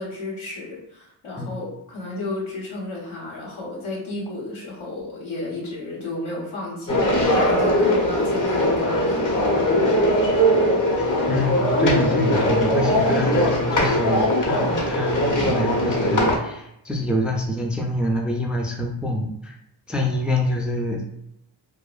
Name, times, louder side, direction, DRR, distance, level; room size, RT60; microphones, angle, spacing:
voice 1, 0.0-9.7, left 2 dB, 80° left, -5 dB, 1.2 m, -33 dB
sound 1, 6.9-16.4, equal, 40° left, 0.8 m, -20 dB
voice 2, 11.3-19.5 19.9-21.0, left 1 dB, ahead, 0 dB, 0.4 m, -26 dB
2.8 x 2.1 x 2.4 m, 0.78 s
cardioid pair, 50°, 47 cm